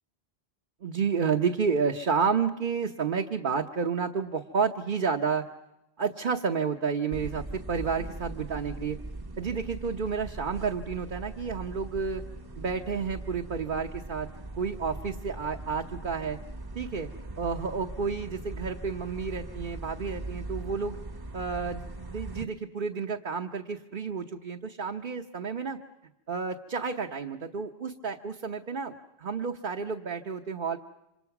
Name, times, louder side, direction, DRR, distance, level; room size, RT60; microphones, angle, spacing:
voice 1, 0.8-5.5 6.0-9.0 9.4-12.2 12.6-14.3 14.5-16.4 16.7-17.1 17.4-21.0 21.3-25.8 26.3-30.8, right 5 dB, 55° right, 2 dB, 1.2 m, -30 dB
sound 1, 7.1-22.5, right 2 dB, 20° right, 1.0 m, -40 dB
27.5 x 26.5 x 6.0 m, 0.93 s
omnidirectional pair, 1.1 m